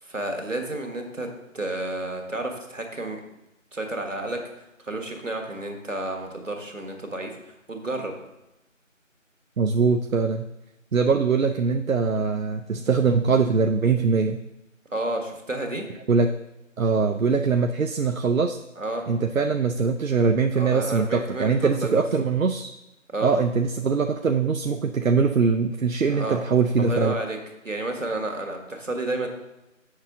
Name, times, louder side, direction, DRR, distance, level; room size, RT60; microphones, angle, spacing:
voice 1, 0.0-1.3 1.5-3.2 3.7-8.1 14.9-15.8 18.8-19.0 20.5-22.0 23.1-23.3 26.1-26.4 26.8-27.4 27.6-29.3, right 2 dB, 70° right, 3 dB, 1.6 m, -31 dB
voice 2, 9.6-10.5 10.9-14.4 16.1-16.3 16.8-18.6 19.1-22.7 23.2-27.2, right 5 dB, 85° right, 5 dB, 0.6 m, -22 dB
7.7 x 6.4 x 3.6 m, 0.94 s
figure-of-eight pair, 170°, 39 cm